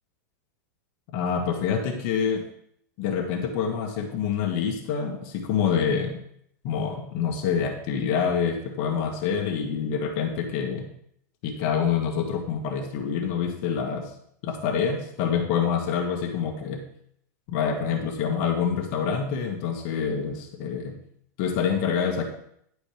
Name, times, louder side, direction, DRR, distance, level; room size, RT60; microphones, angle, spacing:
voice 1, 1.1-2.4 3.0-6.2 6.6-10.9 11.4-14.1 14.4-16.8 17.5-21.0 21.4-22.2, left 7 dB, 40° left, 2 dB, 1.5 m, -26 dB
10.5 x 5.1 x 5.0 m, 0.70 s
supercardioid pair, 170°, 10 cm